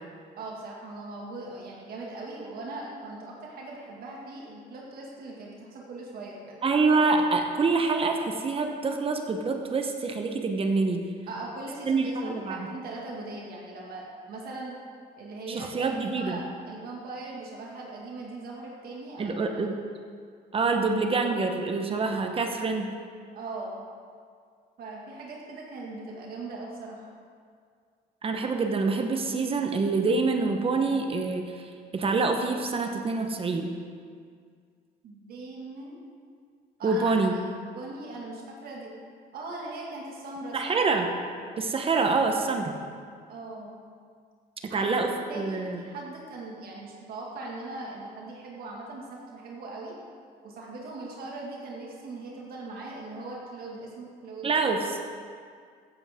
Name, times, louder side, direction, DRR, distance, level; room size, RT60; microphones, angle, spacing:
voice 1, 0.4-6.6 11.3-14.8 15.2-19.4 23.3-23.8 24.8-27.1 35.0-36.0 36.8-37.1 37.7-38.9 39.3-40.7 43.3-43.8 44.7-44.9 45.2-49.9 50.4-54.5, right 2 dB, 60° right, -2 dB, 2.1 m, -40 dB
voice 2, 6.6-11.1 11.8-12.7 15.5-16.4 19.2-19.7 20.5-22.9 28.2-33.7 36.8-37.3 40.5-41.1 41.6-42.7 44.7-45.8 54.4-55.0, right 4 dB, 35° right, 4 dB, 1.0 m, -26 dB
15.0 x 8.1 x 3.7 m, 2.1 s
cardioid pair, 110°, 17 cm